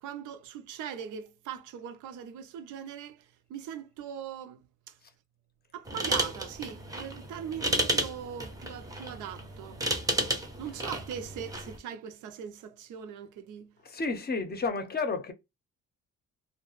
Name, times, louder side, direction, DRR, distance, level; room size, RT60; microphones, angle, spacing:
voice 1, 0.0-3.2 3.5-4.9 5.7-9.8 10.6-13.7, right 8 dB, 85° right, 0.5 m, -40 dB
sound 1, 5.9-11.8, right 1 dB, 10° right, 0.5 m, -32 dB
voice 2, 13.8-15.3, left 4 dB, 30° left, 0.5 m, -31 dB
2.2 x 2.1 x 3.0 m
cardioid pair, 90°, 30 cm